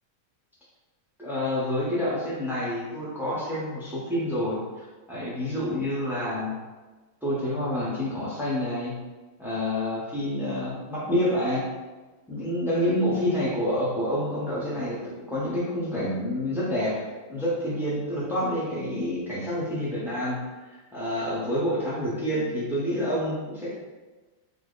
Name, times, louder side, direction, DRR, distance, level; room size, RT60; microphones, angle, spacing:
voice 1, 1.2-6.6 7.2-8.9 9.4-11.7 12.3-20.4 20.7-23.7, left 1 dB, 5° right, -8 dB, 0.3 m, -28 dB
3.4 x 2.2 x 3.8 m, 1.2 s
omnidirectional pair, 1.7 m